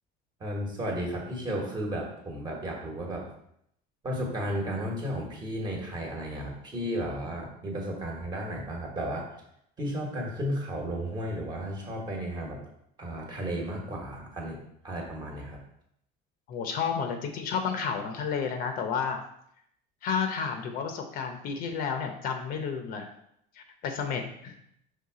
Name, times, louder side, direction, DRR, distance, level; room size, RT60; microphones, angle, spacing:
voice 1, 0.4-3.2 4.0-9.3 9.8-12.6 13.0-14.6 14.8-15.6, equal, 25° right, -1 dB, 1.4 m, -33 dB
voice 2, 16.5-19.2 20.0-23.1 23.6-24.6, left 6 dB, 50° left, 5 dB, 0.8 m, -31 dB
5.6 x 3.6 x 4.9 m, 0.72 s
cardioid pair, 155°, 18 cm